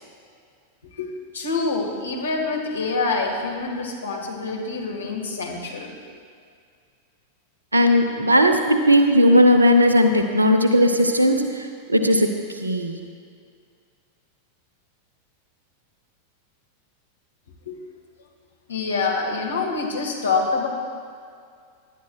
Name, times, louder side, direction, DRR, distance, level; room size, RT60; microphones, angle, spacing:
voice 1, 1.0-6.0 17.7-17.8 18.7-20.7, left 4 dB, 70° left, 1 dB, 1.7 m, -26 dB
voice 2, 7.7-13.0, equal, 80° right, 7 dB, 0.8 m, -17 dB
18.5 x 11.0 x 2.4 m, 2.3 s
figure-of-eight pair, 90°, 0 cm